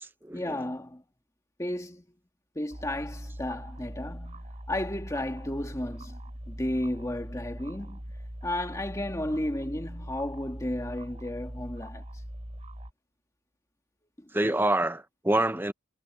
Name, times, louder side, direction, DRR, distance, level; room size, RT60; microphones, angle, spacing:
voice 1, 0.3-1.0 1.6-2.0 2.6-6.2 6.5-8.0 8.4-12.1 14.2-14.3, left 1 dB, 15° left, 1.8 m, -33 dB
sound 1, 2.7-12.9, equal, 30° right, 3.4 m, -41 dB
voice 2, 14.3-15.7, right 1 dB, 10° right, 0.8 m, -26 dB
head